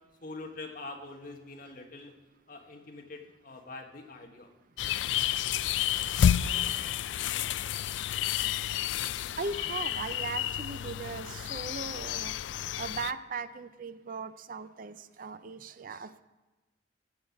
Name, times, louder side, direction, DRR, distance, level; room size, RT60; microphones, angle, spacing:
voice 1, 0.2-2.1 2.5-4.5, left 2 dB, 50° left, 3 dB, 1.4 m, -44 dB
sound 1, 4.8-13.1, left 10 dB, 80° left, 0.3 m, -30 dB
voice 2, 6.3-6.9 9.4-12.3 12.8-16.2, right 4 dB, 50° right, 13 dB, 0.5 m, -39 dB
15.0 x 5.5 x 7.4 m, 1.1 s
head